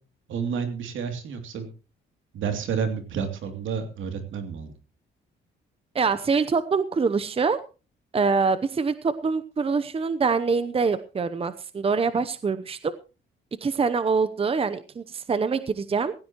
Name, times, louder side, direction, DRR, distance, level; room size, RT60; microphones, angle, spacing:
voice 1, 0.3-1.7 2.3-4.7, right 6 dB, 75° right, 7 dB, 2.9 m, -30 dB
voice 2, 5.9-7.6 8.1-12.9 13.6-16.1, right 5 dB, 30° right, 12 dB, 0.8 m, -24 dB
17.5 x 15.5 x 3.0 m, 0.32 s
cardioid pair, 90°, 20 cm